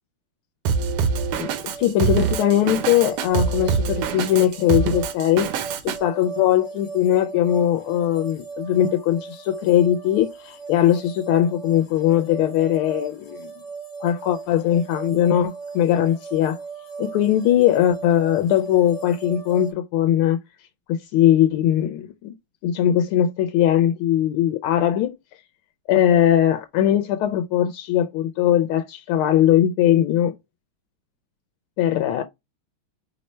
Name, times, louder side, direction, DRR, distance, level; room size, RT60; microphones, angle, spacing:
Drum kit, 0.7-6.0, right 6 dB, 80° right, 1.6 m, -24 dB
sound 1, 1.1-19.7, right 5 dB, 50° left, 1.0 m, -38 dB
voice 1, 1.4-5.5 5.8-13.5 14.0-16.6 17.0-20.4 20.9-22.3 22.6-25.2 25.9-30.3 31.8-32.2, left 11 dB, 80° left, 1.5 m, -20 dB
4.9 x 2.1 x 4.1 m
omnidirectional pair, 2.4 m